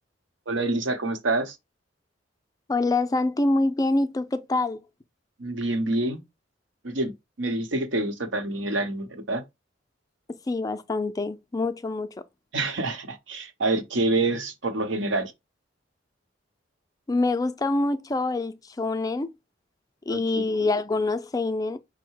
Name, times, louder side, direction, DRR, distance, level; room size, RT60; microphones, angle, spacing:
voice 1, 0.5-1.6 5.4-6.2 6.8-9.4 12.5-15.3 20.1-20.4, right 2 dB, 80° right, 0.9 m, -27 dB
voice 2, 2.7-4.8 10.5-12.2 17.1-19.3 20.1-21.8, left 2 dB, 20° left, 0.4 m, -25 dB
5.6 x 2.1 x 4.5 m
head